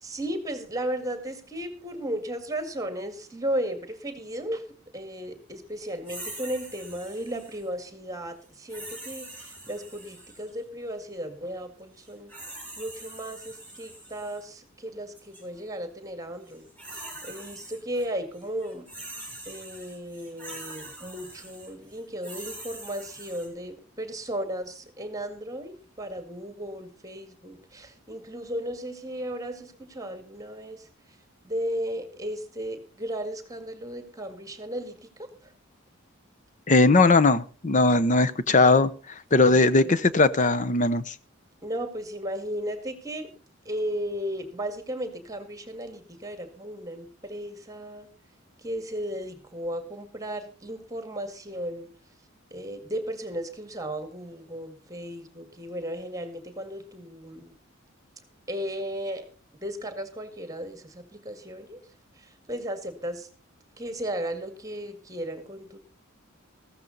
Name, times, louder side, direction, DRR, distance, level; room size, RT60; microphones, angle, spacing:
voice 1, 0.0-4.6 4.9-12.3 12.8-18.9 19.5-30.9 31.4-35.5 39.5-40.2 41.6-43.3 43.7-48.1 48.6-51.9 52.5-57.5 58.5-59.3 59.6-61.8 62.1-63.3 63.8-65.8, equal, 15° right, 2.0 m, -35 dB
sound 1, 6.0-7.7 8.7-10.5 12.0-14.4 15.1-15.4 16.5-18.0 18.3-23.5, right 2 dB, 10° left, 6.4 m, -43 dB
voice 2, 36.7-38.9 39.3-41.1, left 3 dB, 35° left, 0.7 m, -19 dB
15.0 x 13.5 x 4.0 m
head